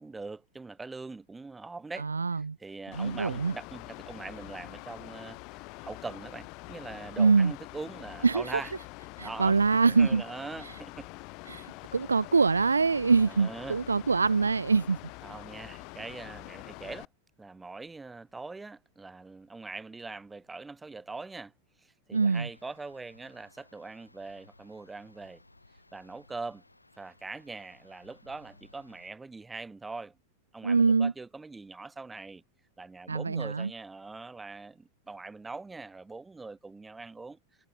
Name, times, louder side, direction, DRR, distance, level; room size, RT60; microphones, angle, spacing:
voice 1, 0.0-8.7 9.2-11.1 13.2-13.8 15.2-17.1 17.4-21.5 21.8-25.4 25.9-26.6 27.0-30.2 30.5-32.4 32.8-37.4, right 3 dB, 10° right, 0.8 m, -42 dB
voice 2, 2.0-2.6 2.9-3.5 7.2-7.5 8.2-8.4 9.2-10.2 11.5-11.7 11.9-15.0 22.1-22.5 30.6-31.1 33.1-33.7, right 4 dB, 75° right, 0.3 m, -24 dB
Mechanical fan, 2.9-17.1, left 28 dB, 45° left, 1.2 m, -45 dB
sound 1, 22.5-29.1, left 2 dB, 85° left, 3.7 m, -60 dB
figure-of-eight pair, 90°, 0 cm